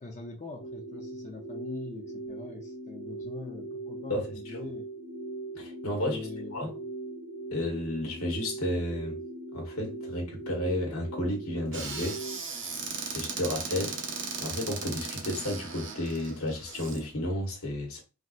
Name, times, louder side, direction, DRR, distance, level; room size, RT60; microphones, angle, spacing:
voice 1, 0.0-4.8 6.0-6.7, left 3 dB, 35° left, 0.5 m, -42 dB
sound 1, 0.6-12.4, right 2 dB, 60° left, 0.9 m, -40 dB
voice 2, 5.5-6.2 6.5-6.7 7.5-9.2 9.5-12.2 12.5-12.8 13.1-14.0 14.4-18.0, left 1 dB, 90° left, 1.0 m, -32 dB
Squeak / Cupboard open or close, 11.7-17.0, right 4 dB, 60° right, 0.8 m, -37 dB
3.4 x 2.7 x 2.3 m
head